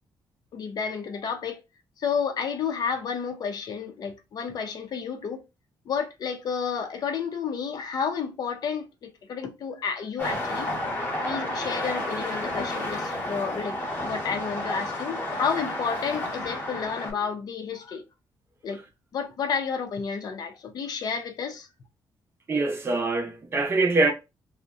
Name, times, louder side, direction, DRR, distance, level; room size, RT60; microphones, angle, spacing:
voice 1, 0.5-1.6 2.0-5.4 5.9-10.7 11.2-18.0 18.6-18.8 19.1-21.7, left 6 dB, 55° left, 0.5 m, -31 dB
sound 1, 10.2-17.1, left 1 dB, 20° left, 0.9 m, -31 dB
voice 2, 22.5-24.1, right 3 dB, 30° right, 0.6 m, -24 dB
2.6 x 2.1 x 2.3 m
cardioid pair, 140°, 8 cm